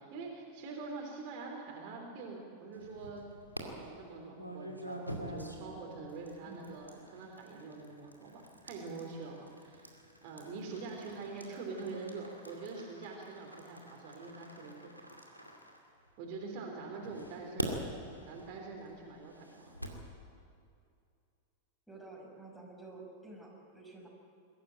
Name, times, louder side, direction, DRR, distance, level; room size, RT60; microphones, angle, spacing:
voice 1, 0.0-3.3 3.6-9.9 10.2-14.9 16.2-17.8 18.2-19.7, right 4 dB, 45° right, 0 dB, 3.4 m, -44 dB
sound 1, 2.7-3.6 4.3-16.4 17.0-20.1, equal, 90° left, 2.4 m, -46 dB
voice 2, 6.4-6.8 11.3-11.6 17.1-17.3 21.9-24.1, right 2 dB, ahead, -2 dB, 5.9 m, -51 dB
22.0 x 13.5 x 9.0 m, 2.4 s
figure-of-eight pair, 90°, 0 cm